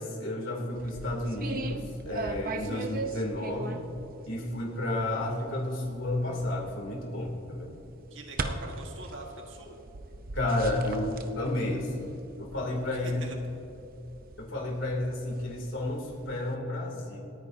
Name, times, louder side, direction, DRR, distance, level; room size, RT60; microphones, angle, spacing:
voice 1, 0.0-3.8 4.3-7.7 10.3-13.2 14.4-17.2, left 1 dB, 75° left, -1 dB, 2.7 m, -32 dB
sound 1, 0.7-16.6, right 3 dB, 45° right, 0.7 m, -41 dB
voice 2, 2.6-2.9 8.1-9.8 13.0-13.4, right 2 dB, 70° right, 2 dB, 1.6 m, -43 dB
28.0 x 9.3 x 2.7 m, 2.9 s
head